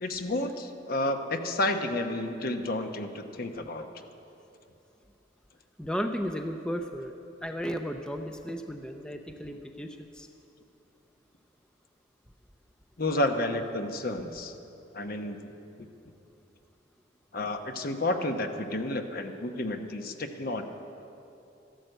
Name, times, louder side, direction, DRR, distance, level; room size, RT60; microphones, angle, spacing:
voice 1, 0.0-3.9 13.0-14.5 14.9-15.4 15.8-15.9 17.3-20.6, left 1 dB, 55° left, 6 dB, 1.0 m, -31 dB
voice 2, 5.8-7.1 7.4-10.3, equal, 5° left, 5 dB, 0.5 m, -34 dB
13.5 x 11.5 x 7.9 m, 2.9 s
head